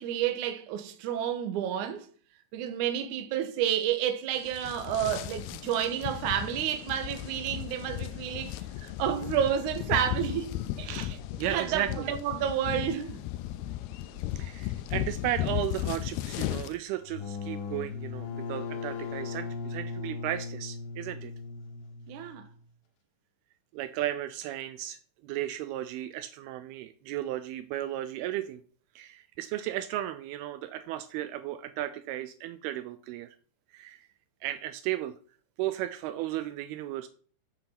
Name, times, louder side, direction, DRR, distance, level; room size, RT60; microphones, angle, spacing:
voice 1, 0.0-2.1 2.5-10.9 11.5-13.2 22.1-22.5, right 10 dB, 65° right, 2.3 m, -30 dB
sound 1, 4.4-16.8, left 13 dB, 85° left, 2.6 m, -35 dB
voice 2, 10.8-12.1 14.4-21.3 23.7-28.6 29.0-33.3 33.7-34.0 34.4-35.1 35.6-37.1, right 13 dB, 80° right, 2.5 m, -35 dB
sound 2, 17.0-22.5, left 5 dB, 70° left, 2.9 m, -38 dB
8.5 x 8.1 x 5.9 m
omnidirectional pair, 4.6 m